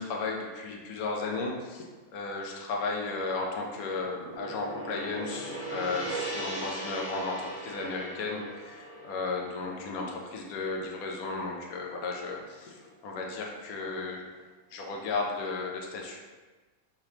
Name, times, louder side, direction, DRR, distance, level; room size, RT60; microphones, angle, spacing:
voice 1, 0.0-1.9 2.1-14.3 14.7-16.2, left 3 dB, 85° left, 0 dB, 1.1 m, -34 dB
Gong, 3.5-11.9, right 1 dB, 30° left, 1.0 m, -40 dB
4.0 x 2.8 x 3.1 m, 1.3 s
omnidirectional pair, 1.5 m